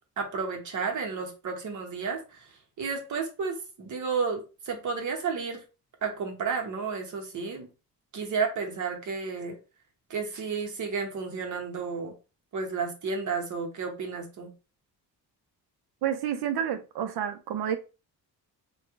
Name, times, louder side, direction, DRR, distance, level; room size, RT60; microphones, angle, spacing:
voice 1, 0.2-2.4 2.8-5.6 6.0-7.7 8.1-9.6 10.1-12.1 12.5-14.5, right 5 dB, 50° right, 0.9 m, -32 dB
voice 2, 16.0-17.8, right 9 dB, 75° right, 0.5 m, -29 dB
3.0 x 2.3 x 3.5 m
wide cardioid pair, 180°, 38 cm